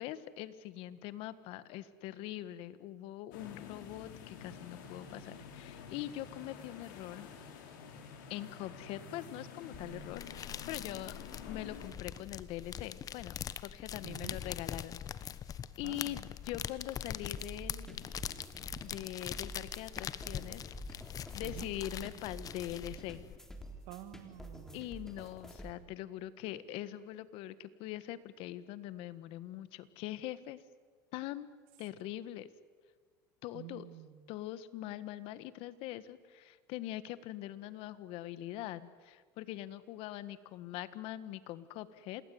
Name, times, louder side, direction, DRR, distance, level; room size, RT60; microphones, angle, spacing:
voice 1, 0.0-7.3 8.3-11.1 11.5-13.4 13.6-15.3 15.8-18.1 18.8-20.6 21.3-23.2 24.7-30.6 31.1-31.5 31.8-32.5 33.4-33.9 34.3-42.2, left 14 dB, 60° left, 14 dB, 1.6 m, -43 dB
sound 1, 3.3-11.9, left 6 dB, 85° left, 4.8 m, -49 dB
sound 2, 9.7-23.4, left 9 dB, 35° left, 1.2 m, -43 dB
voice 2, 14.0-14.4 15.8-16.1 21.4-21.7 23.9-24.8 33.5-34.3, right 15 dB, 70° right, 13 dB, 1.8 m, -48 dB
sound 3, 17.4-25.7, right 1 dB, 5° left, 3.6 m, -49 dB
27.0 x 20.0 x 9.5 m, 1.5 s
supercardioid pair, 110°, 10 cm